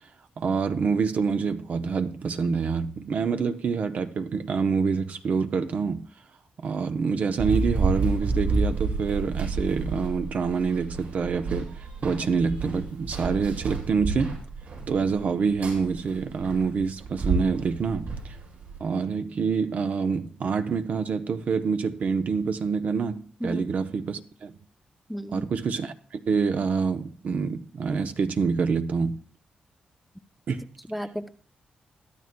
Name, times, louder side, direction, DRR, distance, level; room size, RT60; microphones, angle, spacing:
voice 1, 0.4-6.0 6.6-14.4 14.9-18.3 18.8-24.5 25.3-29.2 30.5-30.7, right 5 dB, 60° right, 0.7 m, -26 dB
Run, 7.4-18.8, right 3 dB, 85° right, 7.0 m, -30 dB
voice 2, 25.1-25.5 30.9-31.3, equal, ahead, 0.6 m, -33 dB
22.0 x 12.5 x 2.2 m
wide cardioid pair, 120°, 3 cm